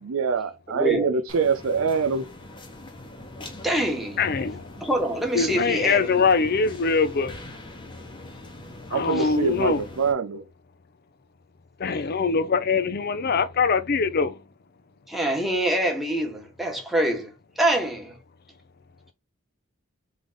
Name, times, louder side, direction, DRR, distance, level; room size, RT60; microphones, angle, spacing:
voice 1, 0.0-2.3 8.9-10.4, right 5 dB, 80° right, 0.5 m, -24 dB
voice 2, 0.7-1.1 3.6-4.2 4.8-6.3 9.1-9.3 15.1-17.3 17.6-18.2, right 1 dB, ahead, 1.2 m, -25 dB
sound 1, 1.3-10.1, left 2 dB, 25° left, 0.9 m, -42 dB
voice 3, 4.2-4.7 5.3-7.3 8.9-9.8 11.8-14.3, left 5 dB, 50° left, 0.6 m, -23 dB
3.7 x 3.4 x 3.9 m
head